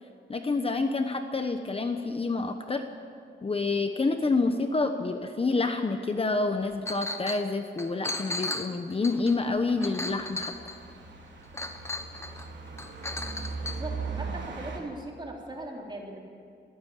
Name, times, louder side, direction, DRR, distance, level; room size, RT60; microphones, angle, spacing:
voice 1, 0.3-2.8 3.4-10.5, left 3 dB, 30° left, 6 dB, 1.1 m, -28 dB
sound 1, 6.6-6.8 9.3-14.8, right 4 dB, 80° right, 3.5 m, -39 dB
Chink clink, 6.9-7.4 7.8-10.9 11.5-12.5 12.8-13.8, left 2 dB, 15° left, 1.3 m, -35 dB
voice 2, 13.6-16.2, right 1 dB, 25° right, -1 dB, 3.9 m, -39 dB
23.5 x 15.0 x 8.5 m, 2.5 s
wide cardioid pair, 135°, 19 cm